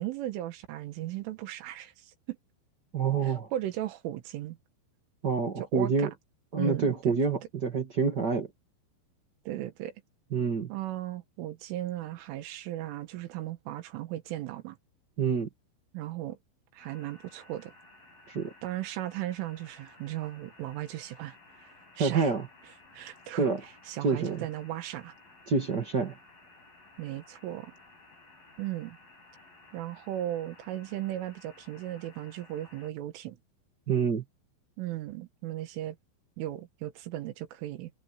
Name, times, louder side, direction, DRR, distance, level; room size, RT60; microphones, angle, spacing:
voice 1, 0.0-2.4 3.2-4.6 5.6-6.1 6.6-7.1 9.5-9.9 10.7-14.8 15.9-16.4 16.7-17.7 18.6-22.3 22.9-23.5 23.9-25.1 27.0-27.7 28.6-29.0 29.7-33.4 34.8-36.0 36.4-37.9, right 13 dB, 85° right, 4.0 m, -36 dB
voice 2, 2.9-3.5 5.2-6.1 6.5-8.5 10.3-10.7 15.2-15.5 18.3-18.5 22.0-22.5 23.4-23.6 24.0-24.5 25.5-26.2 33.9-34.2, right 5 dB, 55° right, 1.1 m, -27 dB
sound 1, 16.8-32.9, left 2 dB, 45° left, 8.9 m, -56 dB
omnidirectional pair, 5.5 m